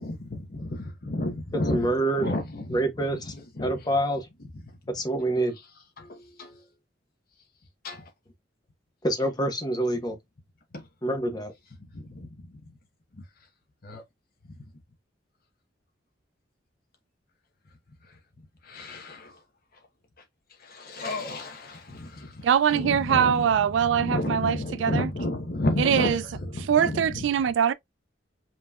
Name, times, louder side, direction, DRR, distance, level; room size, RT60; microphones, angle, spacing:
voice 1, 0.0-1.8 2.2-2.4 3.6-3.7 6.4-6.5 7.8-8.0 12.1-12.3 13.8-14.0 18.7-19.2 20.7-22.3 22.7-23.3 24.0-26.2 26.5-26.9, left 1 dB, 55° left, 0.9 m, -30 dB
voice 2, 1.5-2.3 2.7-3.3 3.6-4.3 4.9-5.6 9.0-10.2 11.0-11.5, right 1 dB, 20° left, 1.0 m, -26 dB
voice 3, 22.4-25.1 25.8-26.3 26.6-27.7, right 8 dB, 70° right, 0.3 m, -23 dB
5.4 x 3.0 x 2.3 m
head